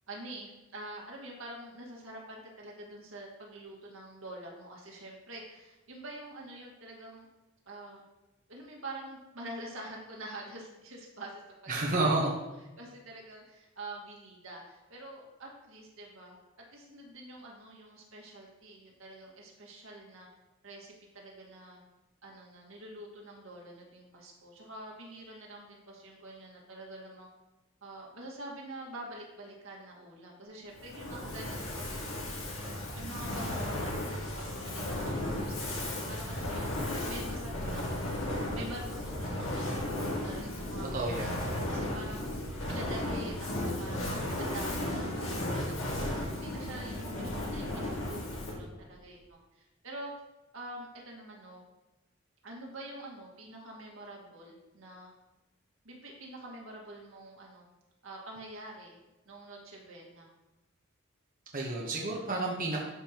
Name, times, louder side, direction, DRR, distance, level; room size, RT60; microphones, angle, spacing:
voice 1, 0.1-7.3 7.7-8.0 8.5-11.7 12.0-12.4 12.8-16.4 16.7-20.3 20.6-21.8 22.2-27.3 27.8-32.5 32.9-36.7 37.1-42.2 42.7-50.1 50.5-51.6 52.4-55.1 55.8-57.6 58.0-59.0 59.3-60.3, right 1 dB, 80° right, -1 dB, 1.9 m, -46 dB
voice 2, 11.7-12.3 40.9-41.4 61.5-62.8, right 2 dB, 45° right, -3 dB, 1.1 m, -30 dB
Fire, 30.8-48.7, left 1 dB, 80° left, 1.8 m, -35 dB
12.0 x 5.2 x 3.0 m, 1.1 s
head